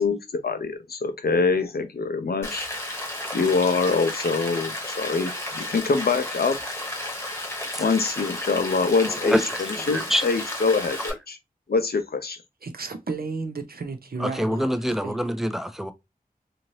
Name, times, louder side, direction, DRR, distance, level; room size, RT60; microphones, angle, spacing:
voice 1, 0.0-2.7 3.3-6.6 7.8-11.4 11.7-12.4, left 4 dB, 85° left, 0.5 m, -24 dB
Rain, 2.4-11.1, left 1 dB, 15° left, 1.0 m, -33 dB
voice 2, 9.1-9.4 9.8-10.2 14.2-15.9, equal, ahead, 0.5 m, -25 dB
voice 3, 12.6-15.2, right 4 dB, 80° right, 0.6 m, -33 dB
2.8 x 2.4 x 3.1 m
wide cardioid pair, 40°, 16 cm